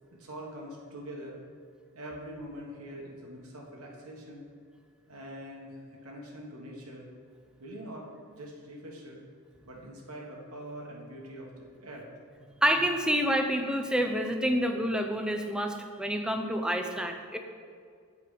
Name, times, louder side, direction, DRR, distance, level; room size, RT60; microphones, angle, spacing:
voice 1, 0.1-1.4 1.9-4.4 5.1-7.1 7.6-9.2 9.6-11.5 11.8-12.0, equal, 85° right, -2 dB, 1.3 m, -43 dB
voice 2, 12.6-17.4, equal, 5° right, 5 dB, 0.4 m, -28 dB
7.6 x 4.8 x 4.9 m, 2.2 s
head